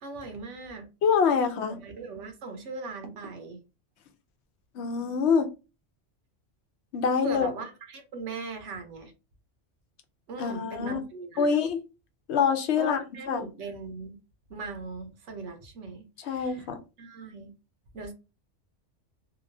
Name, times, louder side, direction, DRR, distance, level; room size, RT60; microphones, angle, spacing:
voice 1, 0.0-0.9 1.6-3.6 7.2-9.1 10.3-11.5 12.8-14.2 14.5-16.7 17.0-17.5 17.9-18.1, right 3 dB, 75° right, 1.1 m, -39 dB
voice 2, 1.0-1.8 4.7-5.5 6.9-7.5 10.4-11.0 11.4-11.8 12.3-13.0 13.3-13.4 16.2-16.8, left 6 dB, 70° left, 0.8 m, -25 dB
2.9 x 2.3 x 2.5 m
omnidirectional pair, 1.3 m